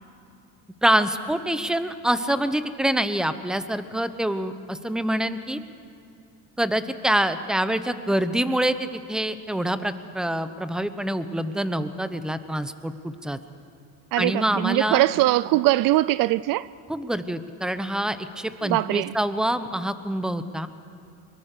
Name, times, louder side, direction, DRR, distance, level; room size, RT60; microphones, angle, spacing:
voice 1, 0.8-5.6 6.6-13.4 14.2-15.0 16.9-20.7, right 1 dB, ahead, 0.9 m, -26 dB
voice 2, 14.1-16.7 18.6-19.1, right 17 dB, 60° right, 0.5 m, -21 dB
23.5 x 23.5 x 6.8 m
cardioid pair, 130°, 38 cm